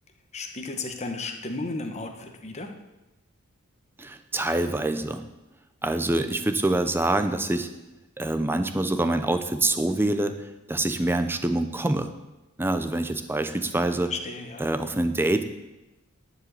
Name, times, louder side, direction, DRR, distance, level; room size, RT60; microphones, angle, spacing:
voice 1, 0.3-2.7 14.1-14.6, left 3 dB, 30° left, 5 dB, 1.1 m, -34 dB
voice 2, 4.0-5.2 5.8-7.7 8.2-10.3 10.7-12.1 12.6-14.1 14.6-15.4, right 2 dB, 10° right, 9 dB, 0.6 m, -25 dB
10.5 x 5.1 x 8.1 m, 1.0 s
head